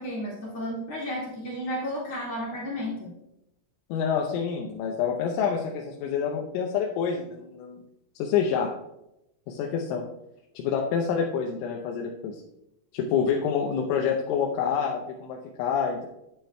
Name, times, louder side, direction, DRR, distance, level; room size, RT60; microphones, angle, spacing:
voice 1, 0.0-3.1, equal, 45° left, -5 dB, 2.2 m, -33 dB
voice 2, 3.9-7.8 8.2-8.7 9.5-10.1 10.6-12.4 12.9-16.1, left 7 dB, 85° left, 0 dB, 3.2 m, -27 dB
9.8 x 9.0 x 2.2 m, 0.85 s
omnidirectional pair, 5.4 m